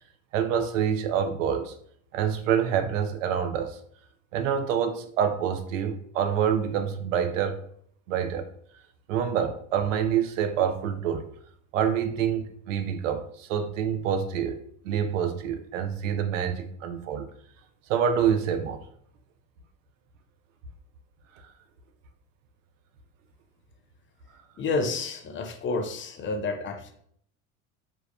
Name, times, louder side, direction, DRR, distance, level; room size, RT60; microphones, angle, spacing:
voice 1, 0.3-1.7 2.1-3.8 4.3-7.6 8.1-8.5 9.1-11.3 11.7-17.3 17.9-18.8, right 8 dB, 70° right, 7 dB, 0.7 m, -27 dB
voice 2, 24.6-26.9, left 3 dB, 30° left, 6 dB, 0.6 m, -30 dB
5.0 x 3.5 x 2.3 m, 0.65 s
figure-of-eight pair, 65°, 40 cm